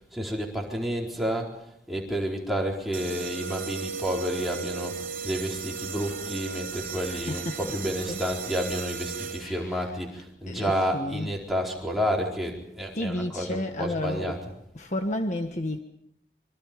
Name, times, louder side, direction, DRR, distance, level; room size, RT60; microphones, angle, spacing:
voice 1, 0.1-1.6 1.9-14.5, equal, ahead, 4.4 m, -30 dB
sound 1, 2.9-9.7, right 6 dB, 45° right, 2.9 m, -36 dB
voice 2, 7.1-7.6 8.1-8.2 9.4-9.9 10.5-11.3 12.9-14.4 14.7-15.8, left 1 dB, 40° left, 1.5 m, -31 dB
26.5 x 24.0 x 5.3 m
head